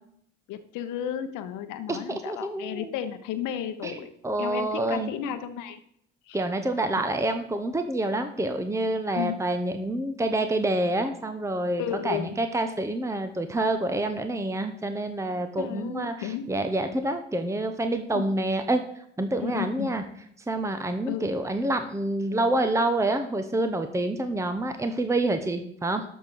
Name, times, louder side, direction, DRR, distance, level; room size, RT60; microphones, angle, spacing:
voice 1, 0.5-4.1 4.4-5.8 6.3-6.4 9.1-9.4 11.8-12.4 15.6-16.5 18.1-18.3 19.4-19.9 21.1-21.3, left 10 dB, 60° left, 10 dB, 1.2 m, -33 dB
voice 2, 1.9-2.9 3.8-3.9 4.2-5.1 6.3-18.8 19.2-20.0 20.5-26.0, right 1 dB, 10° right, 8 dB, 1.0 m, -27 dB
12.5 x 4.6 x 6.9 m, 0.70 s
figure-of-eight pair, 55°, 35 cm